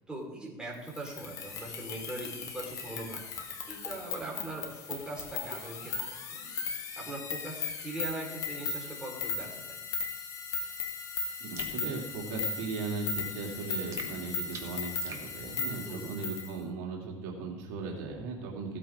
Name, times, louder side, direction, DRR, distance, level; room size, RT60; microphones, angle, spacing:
voice 1, 0.1-3.2 3.7-6.5 7.0-9.8 15.9-16.1, right 2 dB, 10° right, -3 dB, 4.1 m, -41 dB
sound 1, 0.9-16.5, left 5 dB, 50° left, 1.9 m, -37 dB
voice 2, 11.4-18.8, right 4 dB, 85° right, -1 dB, 2.5 m, -37 dB
sound 2, 11.6-11.8 13.9-15.3, right 6 dB, 40° right, 1.8 m, -45 dB
16.0 x 8.4 x 3.6 m, 1.2 s
cardioid pair, 120°, 8 cm